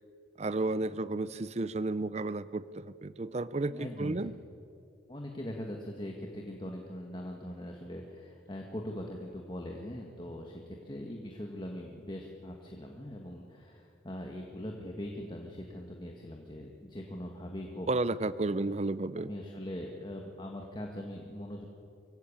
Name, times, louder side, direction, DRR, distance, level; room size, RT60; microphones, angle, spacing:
voice 1, 0.4-4.3 17.9-19.3, right 2 dB, 35° right, 17 dB, 0.5 m, -32 dB
voice 2, 3.6-4.3 5.1-17.9 19.2-21.6, left 1 dB, 25° left, 1 dB, 1.7 m, -41 dB
24.5 x 15.5 x 8.7 m, 2.6 s
head